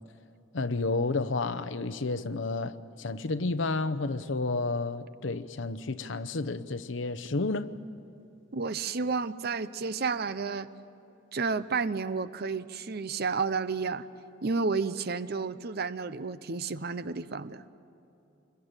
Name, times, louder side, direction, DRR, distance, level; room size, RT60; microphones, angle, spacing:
voice 1, 0.5-7.7, left 3 dB, 70° left, 0.8 m, -31 dB
voice 2, 8.5-10.7 11.3-14.1 14.4-17.6, right 4 dB, 50° right, 0.7 m, -31 dB
26.5 x 22.0 x 8.9 m
head